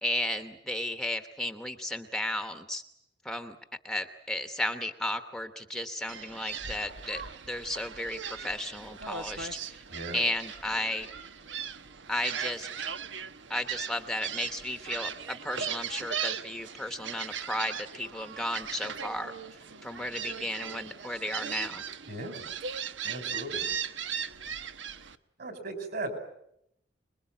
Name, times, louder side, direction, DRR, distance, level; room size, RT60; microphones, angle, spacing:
voice 1, 0.0-2.8 3.2-3.6 3.8-9.8 10.1-11.1 12.1-12.7 13.5-19.3 19.8-21.8, left 1 dB, 5° left, 7 dB, 1.0 m, -34 dB
Gull seagull, 6.1-25.2, right 7 dB, 90° right, 1.1 m, -38 dB
voice 2, 9.9-10.2 22.1-22.4 23.0-23.7 25.4-26.1, right 2 dB, 55° right, 8 dB, 5.4 m, -37 dB
26.5 x 21.5 x 8.9 m, 0.76 s
head